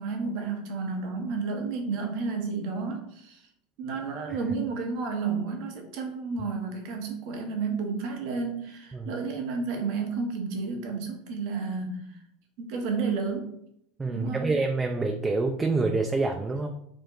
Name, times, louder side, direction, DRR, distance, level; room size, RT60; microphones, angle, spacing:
voice 1, 0.0-3.4 3.8-12.1 12.6-13.5 14.1-14.5, right 4 dB, 55° right, 3 dB, 0.7 m, -31 dB
voice 2, 14.0-16.7, right 3 dB, 15° right, 3 dB, 0.3 m, -27 dB
4.3 x 2.2 x 2.9 m, 0.74 s
figure-of-eight pair, 80°, 0 cm